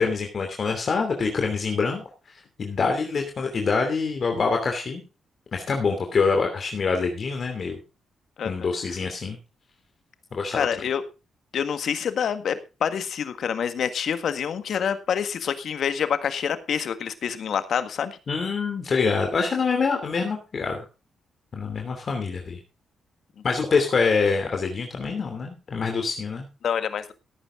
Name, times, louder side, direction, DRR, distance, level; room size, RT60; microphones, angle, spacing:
voice 1, 0.0-2.0 2.3-5.0 5.5-7.8 8.4-9.4 10.3-10.7 18.3-20.8 21.5-22.6 23.4-26.5, left 4 dB, 50° left, 3 dB, 2.8 m, -25 dB
voice 2, 10.5-11.0 11.5-18.2 26.6-27.1, left 8 dB, 70° left, 11 dB, 1.7 m, -27 dB
16.0 x 9.1 x 3.8 m, 0.30 s
cardioid pair, 65°, 0 cm